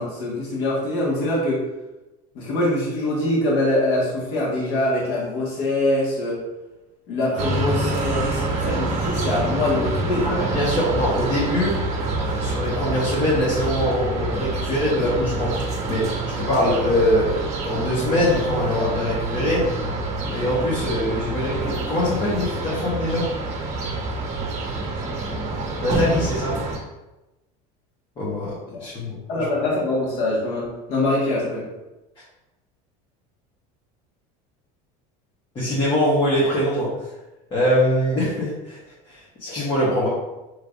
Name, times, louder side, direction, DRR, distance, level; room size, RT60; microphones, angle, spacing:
voice 1, 0.0-1.6 2.3-6.4 7.1-10.4 14.6-14.7 29.3-31.6, left 1 dB, 65° left, -5 dB, 1.6 m, -23 dB
sound 1, 7.4-26.8, right 2 dB, 40° right, 1.4 m, -26 dB
voice 2, 10.2-11.8 12.2-15.5 15.9-17.4 17.6-19.7 20.3-23.3 25.8-26.6 28.2-29.5 35.5-37.1 37.5-38.8 39.1-40.1, left 1 dB, 25° left, -8 dB, 1.3 m, -23 dB
6.5 x 3.2 x 2.5 m, 1.0 s
cardioid pair, 155°, 18 cm